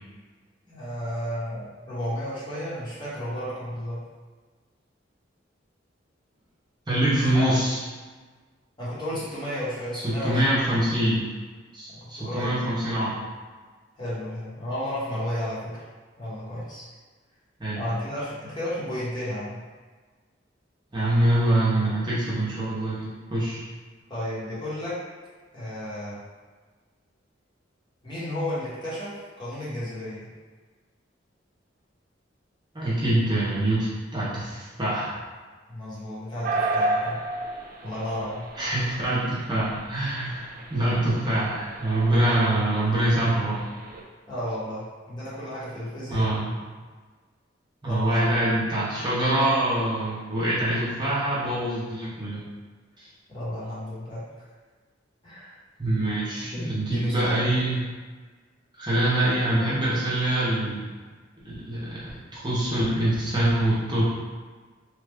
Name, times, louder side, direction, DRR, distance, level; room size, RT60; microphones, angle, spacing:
voice 1, 0.6-4.0 7.3-7.5 8.8-10.6 11.9-12.7 14.0-15.8 16.2-16.8 17.7-19.6 24.1-25.0 25.5-26.2 28.0-30.3 35.7-37.2 37.8-38.5 44.3-46.3 47.8-48.3 53.3-54.4 55.2-55.5 56.4-57.5, left 1 dB, 25° left, -10 dB, 1.1 m, -33 dB
voice 2, 6.9-7.8 9.9-11.2 11.7-13.2 17.6-17.8 20.9-23.6 32.7-35.2 38.6-43.6 46.1-46.5 47.8-52.4 53.0-53.1 55.8-57.7 58.8-60.9 61.4-62.0 62.3-64.0, right 1 dB, 25° right, -9 dB, 0.7 m, -24 dB
sound 1, 36.4-44.0, right 2 dB, 45° right, 0.4 m, -33 dB
3.1 x 2.3 x 3.4 m, 1.4 s
head